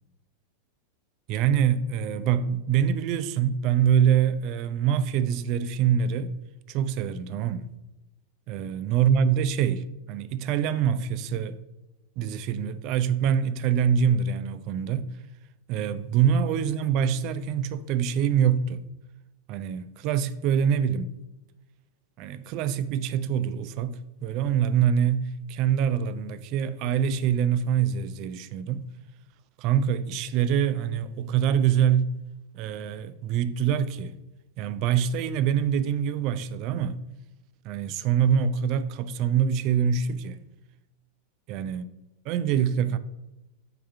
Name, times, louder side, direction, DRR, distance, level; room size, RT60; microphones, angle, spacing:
voice 1, 1.3-6.3 6.7-7.7 8.5-11.6 12.2-15.1 15.7-18.8 19.5-21.1 22.2-28.8 29.6-32.1 32.5-34.2 34.6-36.9 37.6-40.4 41.5-41.9 42.3-43.0, right 8 dB, 40° right, 0.4 m, -25 dB
5.7 x 3.6 x 5.5 m
figure-of-eight pair, 90°, 0 cm